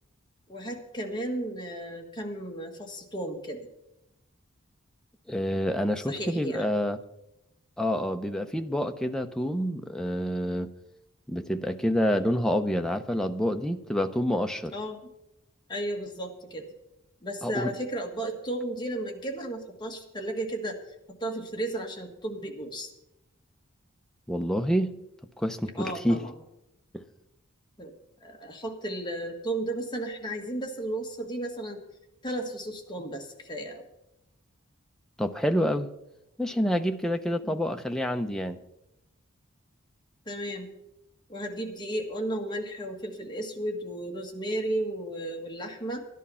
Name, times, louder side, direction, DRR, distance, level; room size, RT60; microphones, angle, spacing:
voice 1, 0.5-3.6 6.1-6.7 14.7-15.0 15.7-16.6 17.2-20.8 21.2-22.9 25.8-26.3 27.8-27.9 28.2-31.8 32.2-33.9 37.4-37.7 40.3-40.7 41.3-46.0, right 1 dB, 20° left, 1 dB, 1.6 m, -34 dB
voice 2, 5.3-7.0 7.8-10.7 11.3-14.7 17.4-17.7 24.3-25.0 25.4-26.2 26.9-27.0 35.2-35.9 36.4-38.6, equal, 5° left, 5 dB, 0.6 m, -27 dB
12.5 x 11.0 x 5.6 m, 0.89 s
head